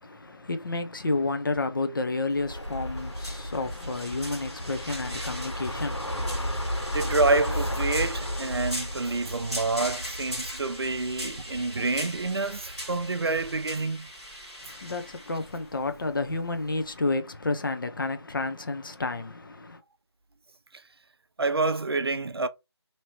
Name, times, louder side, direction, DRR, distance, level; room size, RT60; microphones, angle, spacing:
voice 1, 0.0-6.9 14.6-19.8, left 3 dB, 50° left, 0.7 m, -31 dB
sound 1, 2.3-16.9, equal, ahead, 1.3 m, -40 dB
sound 2, 2.5-13.8, equal, 85° left, 1.9 m, -34 dB
voice 2, 6.9-14.1 21.4-22.5, right 3 dB, 60° right, 0.5 m, -27 dB
3.0 x 2.9 x 4.5 m
figure-of-eight pair, 165°, 14 cm